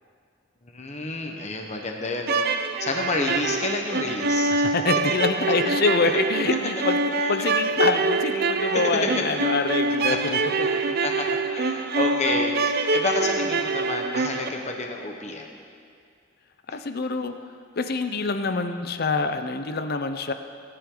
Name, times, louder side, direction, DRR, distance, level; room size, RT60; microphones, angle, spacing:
voice 1, 0.6-2.5 2.8-4.7 6.0-6.1 7.2-7.4 8.7-9.2 9.7-10.2 10.6-15.5 16.7-16.8, left 3 dB, 35° left, 2 dB, 1.1 m, -30 dB
sound 1, 2.2-14.5, right 3 dB, 55° right, 0.6 m, -25 dB
voice 2, 4.5-7.0 7.3-10.9 16.7-17.3 17.8-20.3, left 3 dB, 55° left, 9 dB, 0.7 m, -26 dB
20.0 x 10.0 x 3.9 m, 2.2 s
head